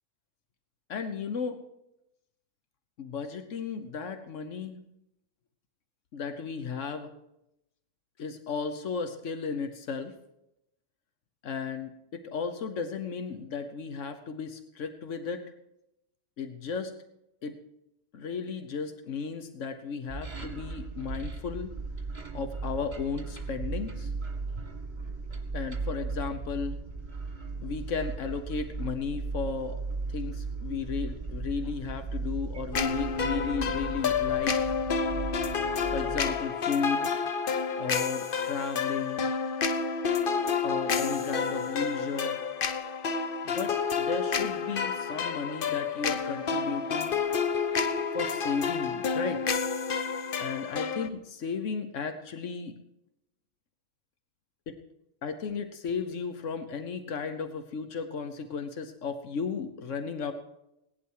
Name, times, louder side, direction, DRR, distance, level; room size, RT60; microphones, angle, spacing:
voice 1, 0.9-1.6 3.0-4.8 6.1-7.1 8.2-10.1 11.4-15.4 16.4-16.9 17.4-17.6 18.1-21.7 22.3-24.1 25.5-26.8 27.6-29.8 30.1-34.7 35.9-37.1 37.8-39.3 40.6-42.4 43.4-47.1 48.1-49.5 50.4-52.8 54.7-54.8 55.2-60.3, left 5 dB, 90° left, 8 dB, 1.3 m, -34 dB
sound 1, 20.1-36.4, right 3 dB, 40° right, 2.0 m, -37 dB
sound 2, 32.7-51.1, left 5 dB, 50° left, 0.9 m, -29 dB
17.5 x 11.0 x 4.7 m, 0.85 s
omnidirectional pair, 1.2 m